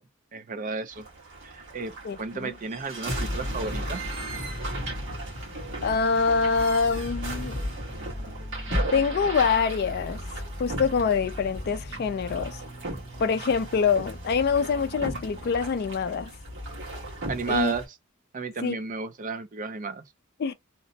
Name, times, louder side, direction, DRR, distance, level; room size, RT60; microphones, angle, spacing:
voice 1, 0.3-1.0 1.4-1.9 2.2-4.0 17.3-17.8 18.3-20.0, right 4 dB, 40° right, 0.4 m, -32 dB
sound 1, 0.9-17.8, equal, 65° right, 1.4 m, -35 dB
voice 2, 2.0-2.5 5.8-7.6 8.7-10.2 10.6-12.6 13.2-16.3 17.5-17.7 18.6-18.8 20.4-20.5, left 5 dB, 50° left, 0.4 m, -25 dB
sound 2, 7.9-16.0, right 2 dB, 5° right, 0.8 m, -48 dB
2.9 x 2.1 x 2.6 m
head